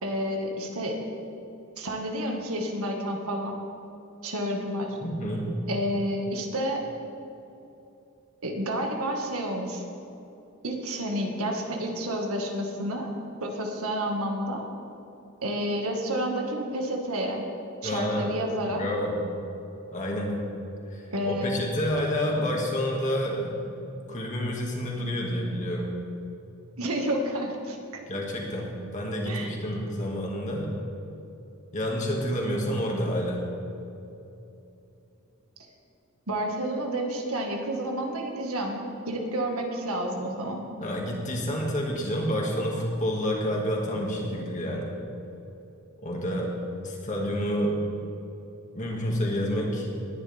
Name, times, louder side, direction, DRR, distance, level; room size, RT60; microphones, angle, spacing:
voice 1, 0.0-1.0 1.8-3.6 4.2-5.0 5.7-6.8 8.4-9.8 10.6-13.1 13.4-14.6 15.4-17.5 17.8-18.8 21.1-21.7 26.8-27.8 29.3-29.5 36.3-40.6, equal, 85° right, 1 dB, 1.9 m, -30 dB
voice 2, 5.0-5.5 17.8-18.3 18.7-19.2 19.9-20.4 20.9-23.6 23.9-25.9 28.1-30.7 31.7-33.4 40.8-44.9 46.0-46.6 46.8-47.8 48.7-50.2, equal, 35° left, -1 dB, 2.2 m, -29 dB
20.0 x 11.0 x 3.6 m, 2.8 s
head